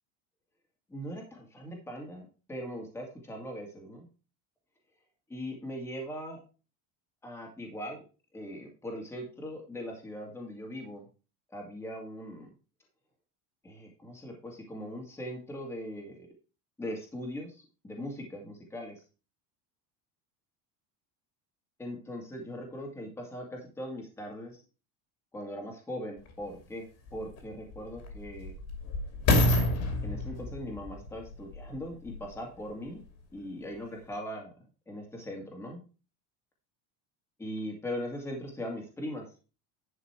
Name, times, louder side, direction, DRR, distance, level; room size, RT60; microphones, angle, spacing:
voice 1, 0.9-4.1 5.3-6.4 7.2-8.0 8.3-11.0 11.5-12.5 13.6-16.2 16.8-18.9 21.8-24.6 25.3-26.9 27.1-28.5 30.0-33.0 33.3-34.5 34.9-35.8 37.4-39.3, equal, 5° left, 0 dB, 2.2 m, -40 dB
sound 1, 26.3-26.4 27.1-32.4 33.0-33.1, left 1 dB, 40° left, 2.8 m, -29 dB
11.0 x 5.7 x 4.6 m, 0.32 s
cardioid pair, 180°, 39 cm